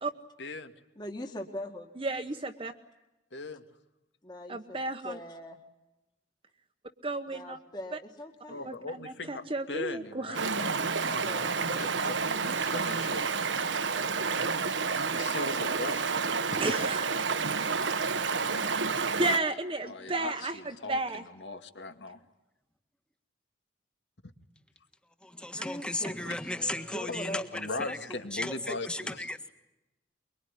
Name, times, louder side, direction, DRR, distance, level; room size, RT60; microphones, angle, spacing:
voice 1, 0.4-0.7 3.3-3.6 8.5-11.3 11.6-13.3 15.1-16.2 16.5-16.8 19.8-22.2 26.2-26.3 27.5-29.3, left 3 dB, 75° left, 8 dB, 2.2 m, -39 dB
voice 2, 1.0-1.9 4.2-5.6 7.3-8.8 11.1-11.9 20.4-20.5 25.6-28.3, left 1 dB, 25° left, 3 dB, 2.0 m, -42 dB
voice 3, 2.0-2.7 4.5-5.2 7.0-7.6 8.6-8.7 9.1-10.3 16.6-17.0 19.2-20.6 20.9-21.2 25.6-25.7, right 2 dB, 30° right, 5 dB, 1.1 m, -32 dB
Stream, 10.3-19.4, right 5 dB, 85° right, 1.4 m, -30 dB
voice 4, 25.2-27.4 27.9-28.0 28.3-29.5, left 1 dB, 5° left, 9 dB, 1.5 m, -35 dB
24.0 x 23.5 x 9.9 m, 0.96 s
head